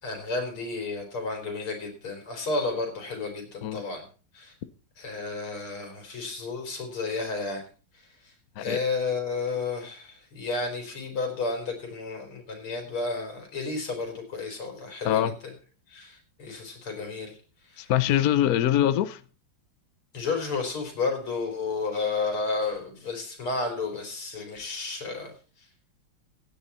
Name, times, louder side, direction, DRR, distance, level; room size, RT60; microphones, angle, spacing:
voice 1, 0.0-4.0 4.3-4.5 5.0-7.6 8.6-15.2 15.9-17.3 17.7-17.9 20.1-25.3, left 3 dB, 85° left, 4.8 m, -32 dB
voice 2, 15.0-15.4 17.8-19.2, left 11 dB, 60° left, 1.0 m, -23 dB
16.0 x 10.0 x 4.2 m
omnidirectional pair, 2.3 m